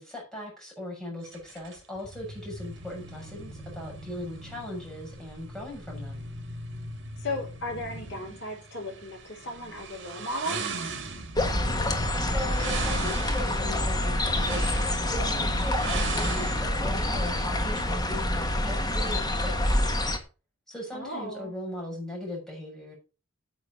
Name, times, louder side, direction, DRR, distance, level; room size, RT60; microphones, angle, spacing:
voice 1, 0.0-6.3 12.3-19.9 20.7-22.9, left 1 dB, 5° left, -1 dB, 6.8 m, -39 dB
sound 1, 1.3-16.6, right 3 dB, 65° right, 2.8 m, -39 dB
voice 2, 7.2-10.6 20.9-21.5, left 1 dB, 60° left, 1 dB, 5.7 m, -35 dB
sound 2, 11.4-20.2, left 1 dB, 20° left, 1.6 m, -27 dB
9.3 x 8.2 x 5.8 m, 0.33 s
head